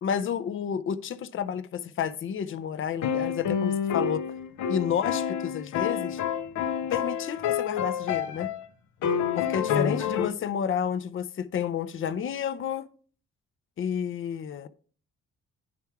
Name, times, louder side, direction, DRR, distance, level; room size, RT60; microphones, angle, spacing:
voice 1, 0.0-4.2 4.7-6.2 6.9-8.5 9.4-12.9 13.8-14.7, left 8 dB, 45° left, 0.6 m, -30 dB
sound 1, 3.0-8.6 9.0-10.3, left 8 dB, 75° left, 0.8 m, -28 dB
9.6 x 3.5 x 4.5 m
cardioid pair, 90°, 30 cm